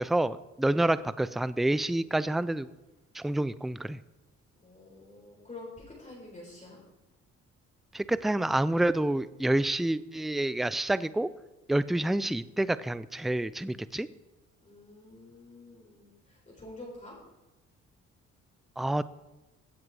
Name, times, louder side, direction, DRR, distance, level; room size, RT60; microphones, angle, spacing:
voice 1, 0.0-2.7 3.1-4.0 7.9-11.3 11.7-14.1 18.8-19.0, right 1 dB, ahead, 16 dB, 0.4 m, -28 dB
voice 2, 4.6-6.8 14.6-17.2, left 2 dB, 25° left, -4 dB, 4.0 m, -48 dB
15.5 x 7.6 x 4.8 m, 1.0 s
cardioid pair, 90°, 30 cm